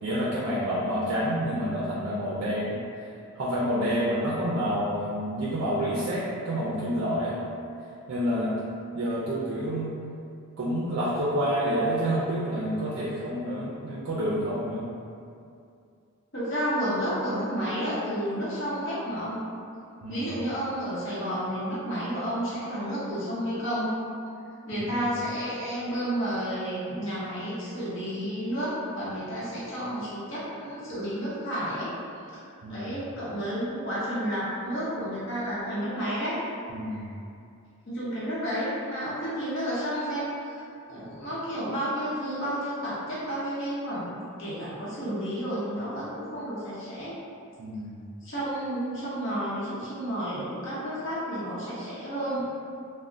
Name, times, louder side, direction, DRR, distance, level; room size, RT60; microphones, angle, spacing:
voice 1, 0.0-2.8 3.4-7.4 8.1-8.5 8.9-9.9 10.6-14.9 20.0-20.3 24.7-24.9 32.6-32.9 36.7-37.1 47.6-48.0, equal, 55° right, -8 dB, 0.4 m, -28 dB
voice 2, 16.3-19.4 20.1-23.9 24.7-31.9 32.3-32.4 32.7-36.4 36.9-37.0 37.9-47.1 48.2-52.5, equal, 55° left, -10 dB, 0.8 m, -31 dB
3.5 x 2.0 x 2.5 m, 2.5 s
head